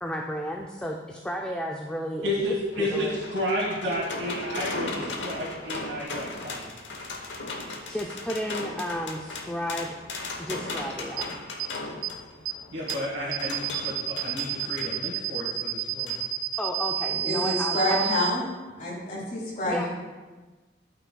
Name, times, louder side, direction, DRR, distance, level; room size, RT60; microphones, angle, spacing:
voice 1, 0.0-3.2 7.9-10.0 10.4-11.4 16.6-18.1 19.7-19.9, equal, 5° left, 0 dB, 0.4 m, -33 dB
voice 2, 2.2-6.7 12.7-16.1, equal, 80° right, -7 dB, 1.6 m, -31 dB
sound 1, 2.4-14.9 16.1-16.2 16.5-16.6, left 2 dB, 85° left, 1.0 m, -37 dB
sound 2, 11.2-11.3 11.6-11.7 12.0-12.1 12.5-12.6 12.9-13.0 13.3-18.3, right 12 dB, 55° right, 0.4 m, -29 dB
voice 3, 17.2-18.4 18.8-19.9, left 1 dB, 45° left, -6 dB, 2.2 m, -27 dB
12.0 x 5.7 x 2.3 m, 1.3 s
head